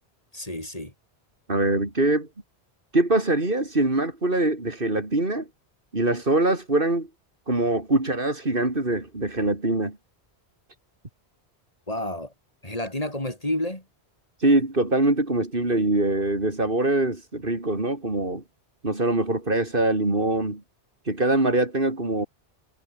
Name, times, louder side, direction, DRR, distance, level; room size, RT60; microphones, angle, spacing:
voice 1, 0.3-0.9 11.9-12.3 12.6-13.8, left 1 dB, 35° left, 6.8 m, -30 dB
voice 2, 1.5-2.3 2.9-5.5 5.9-7.1 7.5-10.0 14.4-18.4 18.8-20.6 21.1-22.3, right 2 dB, 55° right, 4.2 m, -23 dB
omnidirectional pair, 1.1 m